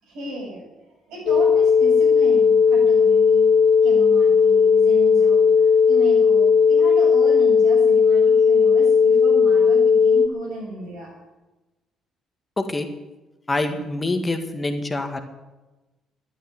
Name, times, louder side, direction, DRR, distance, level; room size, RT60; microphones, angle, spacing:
voice 1, 0.0-0.6 1.1-3.5 3.8-11.1, right 1 dB, 65° right, -1 dB, 7.3 m, -34 dB
sound 1, 1.3-10.3, left 6 dB, 65° left, 1.8 m, -16 dB
voice 2, 12.6-12.9 13.5-15.2, left 2 dB, 25° left, 7 dB, 1.9 m, -25 dB
13.0 x 9.8 x 9.5 m, 1.1 s
hypercardioid pair, 45°, 0 cm